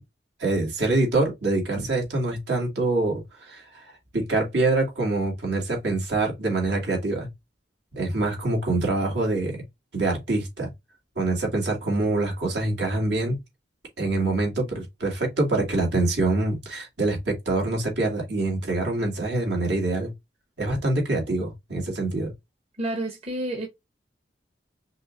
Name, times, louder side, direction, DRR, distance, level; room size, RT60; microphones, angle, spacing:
voice 1, 0.4-3.6 4.1-7.3 7.9-9.6 9.9-10.7 11.2-13.4 14.0-20.1 20.6-22.3, right 2 dB, 75° right, 2.7 m, -25 dB
voice 2, 22.8-23.7, right 1 dB, 35° right, 1.1 m, -29 dB
5.5 x 2.9 x 2.6 m
head